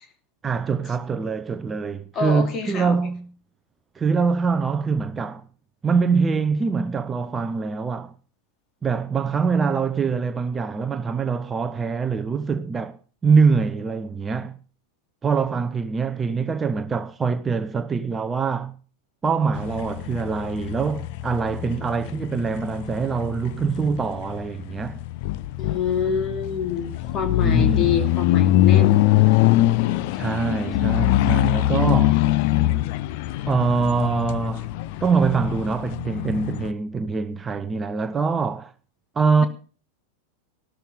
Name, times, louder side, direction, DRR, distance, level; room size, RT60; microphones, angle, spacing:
voice 1, 0.4-3.3 4.0-5.5 5.8-8.1 8.8-14.6 15.2-18.7 19.2-25.0 27.4-28.0 30.1-32.2 33.5-34.7 35.0-38.7 39.2-39.4, right 5 dB, 15° right, 0.8 m, -24 dB
voice 2, 2.1-3.0 25.6-29.0, left 7 dB, 30° left, 2.6 m, -26 dB
sound 1, 19.5-36.7, left 15 dB, 45° left, 0.7 m, -23 dB
14.5 x 12.5 x 5.4 m
figure-of-eight pair, 90°, 0 cm